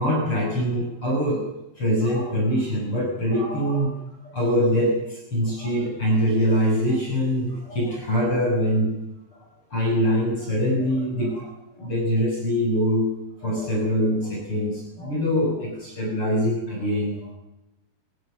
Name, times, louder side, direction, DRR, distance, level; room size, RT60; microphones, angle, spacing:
voice 1, 0.0-1.4 1.8-3.9 4.3-8.9 9.7-13.1 13.4-17.3, equal, 35° left, -2 dB, 6.9 m, -23 dB
24.0 x 19.5 x 6.7 m, 0.87 s
omnidirectional pair, 4.4 m